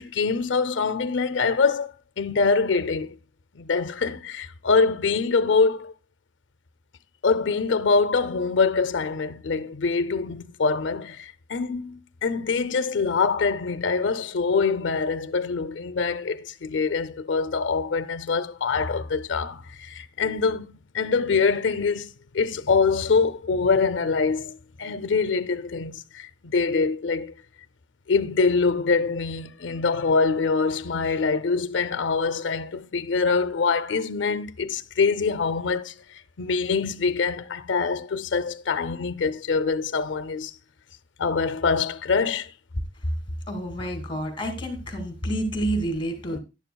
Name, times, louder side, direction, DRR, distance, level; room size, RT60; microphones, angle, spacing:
voice 1, 0.0-1.9 2.2-3.2 3.5-5.9 7.2-20.7 20.9-27.3 28.1-40.5 41.2-42.5 46.3-46.4, left 4 dB, 70° left, 0.6 m, -24 dB
voice 2, 43.5-46.4, right 1 dB, 25° left, 2.4 m, -29 dB
11.5 x 11.0 x 2.3 m
head